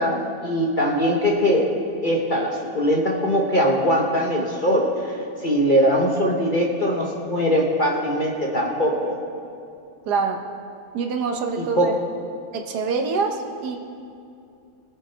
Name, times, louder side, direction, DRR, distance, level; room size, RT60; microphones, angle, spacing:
voice 1, 0.0-1.7 2.0-9.2 11.6-12.0, equal, 35° left, -1 dB, 1.0 m, -21 dB
voice 2, 10.1-10.4 10.9-12.0 12.5-13.8, right 5 dB, 90° right, 3 dB, 1.4 m, -25 dB
19.5 x 7.1 x 4.4 m, 2.5 s
omnidirectional pair, 1.7 m